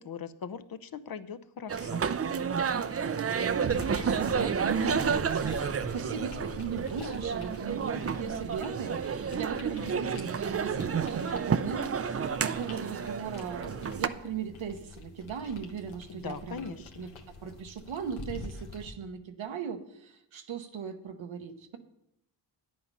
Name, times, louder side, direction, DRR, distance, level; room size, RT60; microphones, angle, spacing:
voice 1, 0.0-2.0 16.1-17.1, left 6 dB, 50° left, 12 dB, 0.7 m, -40 dB
sound 1, 1.7-14.1, right 6 dB, 30° right, 0.5 m, -31 dB
sound 2, 3.7-18.9, left 3 dB, 90° left, 1.3 m, -46 dB
voice 2, 4.0-17.1 17.4-21.8, right 6 dB, 80° right, 7 dB, 1.1 m, -38 dB
9.5 x 8.6 x 5.4 m, 0.81 s
cardioid pair, 60°, 46 cm